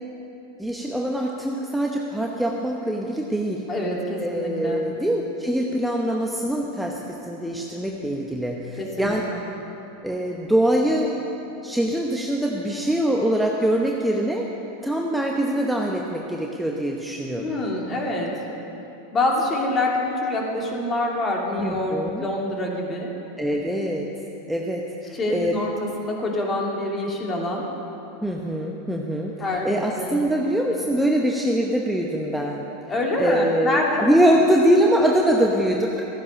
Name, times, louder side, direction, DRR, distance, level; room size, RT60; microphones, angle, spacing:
voice 1, 0.6-3.6 4.2-9.2 10.0-11.1 11.6-14.5 14.8-17.4 21.6-22.3 23.4-24.1 24.5-25.6 28.2-29.3 29.6-32.7 33.2-36.0, right 1 dB, 5° right, -1 dB, 0.9 m, -23 dB
voice 2, 3.7-4.8 8.8-9.4 17.4-18.3 19.1-23.1 25.1-27.7 29.4-29.7 30.0-30.2 30.7-30.8 32.9-34.1, left 1 dB, 25° left, -1 dB, 2.5 m, -26 dB
14.0 x 9.7 x 5.5 m, 3.0 s
hypercardioid pair, 105°, 0 cm